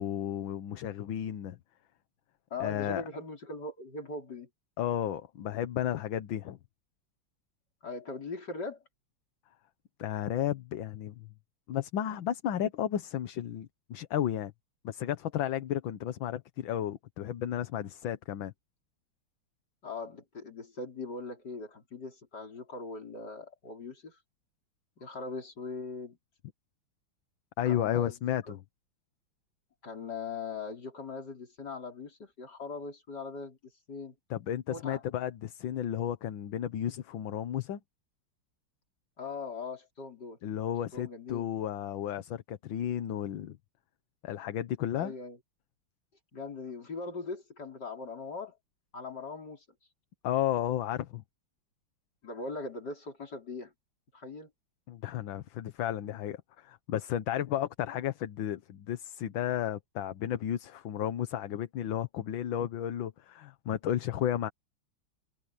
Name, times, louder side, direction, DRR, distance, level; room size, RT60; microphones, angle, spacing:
voice 1, 0.0-1.6 2.6-3.0 4.8-6.6 10.0-11.3 11.7-14.5 14.8-18.5 27.6-28.6 34.3-37.8 40.4-43.6 44.2-45.1 50.2-51.2 54.9-64.5, left 10 dB, 70° left, 1.7 m, -33 dB
voice 2, 2.5-4.5 7.8-8.8 19.8-24.2 25.0-26.2 27.7-28.1 28.5-28.6 29.8-33.6 33.9-34.1 34.7-35.0 39.2-40.4 40.9-41.5 44.9-45.4 46.3-48.6 48.9-49.6 52.2-53.7 54.1-54.5, left 4 dB, 50° left, 4.8 m, -40 dB
omnidirectional pair, 2.3 m